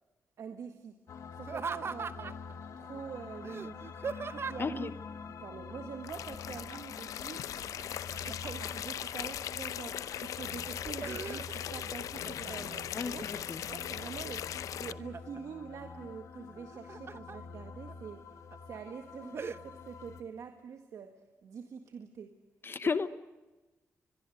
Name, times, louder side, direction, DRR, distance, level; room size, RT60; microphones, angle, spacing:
voice 1, 0.4-1.0 1.3-2.4 2.8-3.9 4.3-4.9 5.4-7.6 8.2-13.2 13.6-18.4 18.7-22.3, right 6 dB, 75° right, 6 dB, 1.8 m, -45 dB
sound 1, 1.1-20.2, left 5 dB, 75° left, 1.8 m, -47 dB
Laughter, 1.4-2.5 3.4-4.8 6.5-7.0 7.3-8.9 9.5-10.1 10.6-11.8 12.2-12.8 13.3-14.1 14.5-15.4 16.6-17.4 17.9-18.0 18.5-18.8 19.4-19.6, right 5 dB, 45° right, 0.9 m, -41 dB
voice 2, 4.6-4.9 12.9-13.6 22.6-23.1, left 5 dB, 45° left, 13 dB, 1.0 m, -33 dB
sound 2, 6.0-14.9, left 10 dB, 90° left, 0.7 m, -39 dB
23.5 x 22.5 x 8.0 m, 1.2 s
cardioid pair, 80°, 6 cm